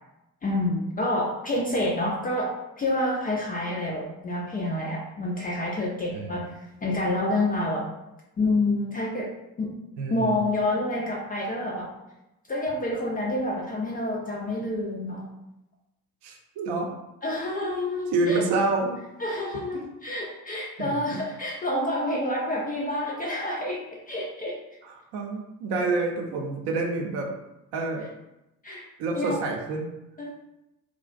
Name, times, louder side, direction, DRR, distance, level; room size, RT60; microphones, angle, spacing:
voice 1, 0.4-7.8 8.4-9.3 9.6-9.7 10.1-11.9 12.5-15.3 17.2-18.5 19.2-24.6 28.6-28.8 29.1-29.3 30.2-30.3, left 1 dB, 20° left, -3 dB, 0.3 m, -28 dB
voice 2, 6.1-6.5 10.0-10.3 16.2-16.9 17.6-17.7 18.1-19.0 19.7-19.8 20.8-21.2 24.8-27.3 27.7-28.0 29.0-29.9, right 3 dB, 55° right, 1 dB, 0.6 m, -28 dB
2.4 x 2.1 x 2.4 m, 0.93 s
hypercardioid pair, 55°, 48 cm